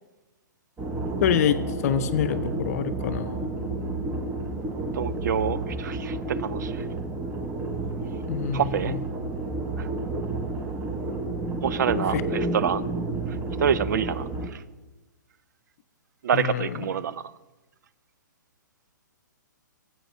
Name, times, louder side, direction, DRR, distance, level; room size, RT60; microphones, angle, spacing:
sound 1, 0.8-14.5, right 2 dB, 15° right, 0.9 m, -30 dB
voice 1, 1.2-3.6 8.3-9.0 11.9-12.2 16.3-16.8, left 9 dB, 50° left, 10 dB, 0.6 m, -26 dB
voice 2, 4.9-6.9 8.5-8.9 9.8-9.9 11.6-12.8 13.3-14.6 16.2-17.2, right 8 dB, 65° right, 17 dB, 0.4 m, -27 dB
18.0 x 8.1 x 3.0 m, 1.1 s
hypercardioid pair, 130°, 10 cm